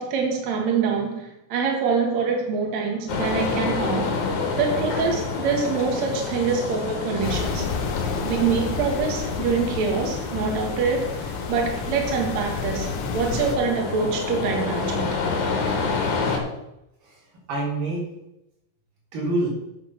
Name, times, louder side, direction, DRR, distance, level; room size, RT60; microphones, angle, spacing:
voice 1, 0.0-4.2 4.6-7.7 8.2-15.2, right 5 dB, 75° right, 1 dB, 1.6 m, -25 dB
sound 1, 3.1-16.4, left 4 dB, 65° left, 1.9 m, -28 dB
sound 2, 7.2-13.6, left 5 dB, 80° left, 2.0 m, -31 dB
voice 2, 15.7-16.3 17.0-18.1 19.1-19.5, right 2 dB, 45° right, -4 dB, 4.6 m, -29 dB
8.7 x 7.0 x 6.0 m, 0.87 s
omnidirectional pair, 5.7 m